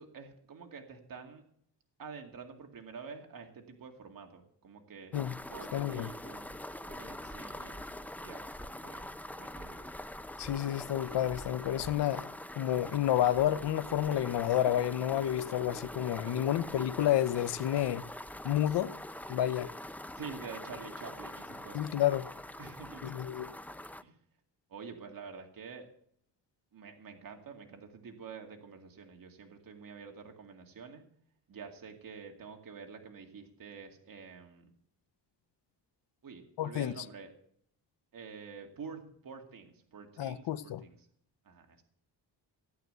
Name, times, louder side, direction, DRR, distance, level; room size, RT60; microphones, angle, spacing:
voice 1, 0.0-1.4 2.0-5.2 5.5-6.5 6.9-7.9 8.2-9.8 16.3-16.4 20.2-21.9 22.6-23.2 24.0-24.1 24.7-25.9 26.7-31.0 31.5-34.7 36.2-37.3 38.1-41.0 41.4-41.8, right 5 dB, 55° right, 2.4 m, -48 dB
sound 1, 5.1-24.0, left 1 dB, 5° left, 0.6 m, -44 dB
voice 2, 5.7-6.1 10.4-12.3 12.5-18.1 18.4-19.0 19.3-19.7 21.7-22.3 23.0-23.5 36.6-36.9 40.2-40.8, left 12 dB, 80° left, 0.8 m, -30 dB
16.0 x 9.2 x 6.8 m
cardioid pair, 110°, 41 cm